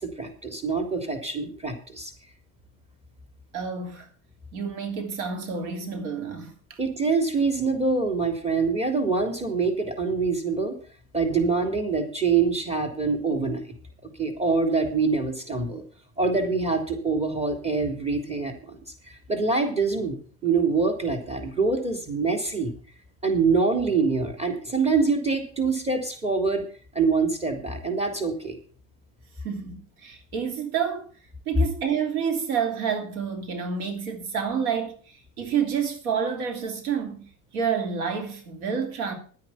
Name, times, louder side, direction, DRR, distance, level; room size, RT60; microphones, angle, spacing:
voice 1, 0.0-2.1 6.8-10.8 11.1-13.6 14.2-15.8 16.2-18.8 19.1-20.2 20.4-22.7 23.2-26.6 26.9-28.6, right 4 dB, 15° right, 3.5 m, -25 dB
voice 2, 3.5-4.1 4.5-6.8 29.4-31.1 31.5-37.3 37.5-39.1, right 7 dB, 80° right, 3.0 m, -29 dB
11.5 x 9.6 x 5.9 m
hypercardioid pair, 90°, 41 cm